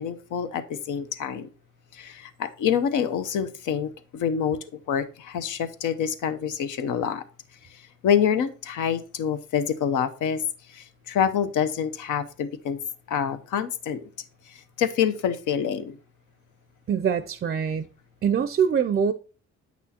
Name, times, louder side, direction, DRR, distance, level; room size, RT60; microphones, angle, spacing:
voice 1, 0.0-1.5 1.9-7.2 7.7-10.4 10.7-12.8 13.1-14.0 14.5-16.0, left 8 dB, 80° left, 0.8 m, -27 dB
voice 2, 16.9-17.9 18.2-19.1, right 7 dB, 35° right, 0.4 m, -23 dB
8.2 x 6.1 x 2.8 m
cardioid pair, 90°, 30 cm